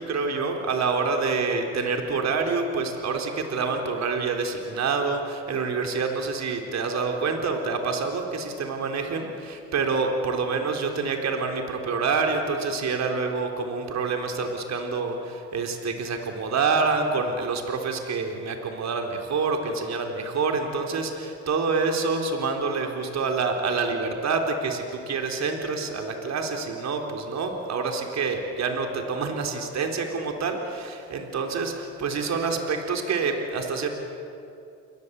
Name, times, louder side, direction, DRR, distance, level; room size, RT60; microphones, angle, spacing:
voice 1, 0.0-33.9, right 4 dB, 65° right, 4 dB, 3.9 m, -27 dB
29.5 x 22.0 x 8.4 m, 2.6 s
cardioid pair, 90°, 30 cm